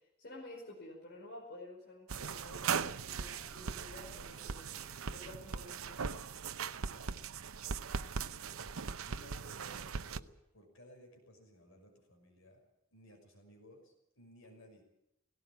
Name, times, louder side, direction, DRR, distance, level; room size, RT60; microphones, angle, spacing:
voice 1, 0.2-6.2 6.8-7.1, left 1 dB, 55° left, -1 dB, 5.1 m, -51 dB
sound 1, 2.1-10.2, right 6 dB, 85° right, 0.7 m, -39 dB
voice 2, 8.4-14.8, equal, 70° left, 3 dB, 6.1 m, -59 dB
18.5 x 17.5 x 8.8 m, 0.82 s
head